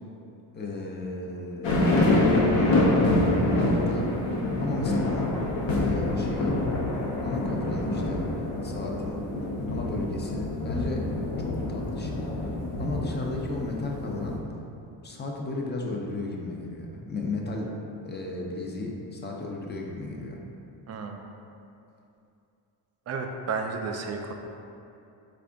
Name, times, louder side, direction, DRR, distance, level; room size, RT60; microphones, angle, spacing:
voice 1, 0.5-1.8 2.3-2.8 3.6-4.2 4.6-5.3 5.7-6.7 7.0-8.3 8.6-9.2 9.7-12.3 12.8-14.5 15.0-17.7 18.0-20.4, left 2 dB, 20° left, 0 dB, 0.6 m, -34 dB
sound 1, 1.6-14.4, left 2 dB, 60° left, 0.8 m, -26 dB
voice 2, 20.9-21.2 23.1-24.3, right 4 dB, 35° right, 4 dB, 0.4 m, -32 dB
4.1 x 2.5 x 3.5 m, 2.7 s
hypercardioid pair, 55°, 50 cm